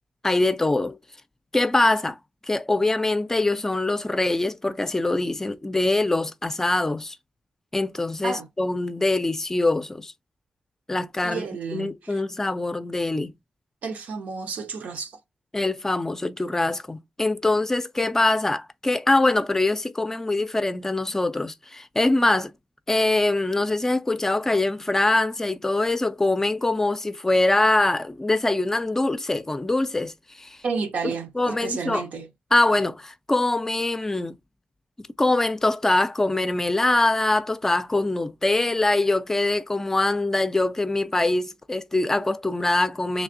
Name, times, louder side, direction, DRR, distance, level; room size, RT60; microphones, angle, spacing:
voice 1, 0.2-1.0 1.5-2.2 2.4-7.2 7.7-10.1 10.9-11.4 11.7-13.4 15.5-22.5 22.9-30.6 31.4-32.0 32.5-34.4 35.0-43.2, left 2 dB, 15° left, 0.4 m, -23 dB
voice 2, 11.2-12.2 13.8-15.2 30.6-32.3, right 5 dB, 90° right, 0.8 m, -31 dB
3.4 x 3.2 x 2.5 m
wide cardioid pair, 110°, 3 cm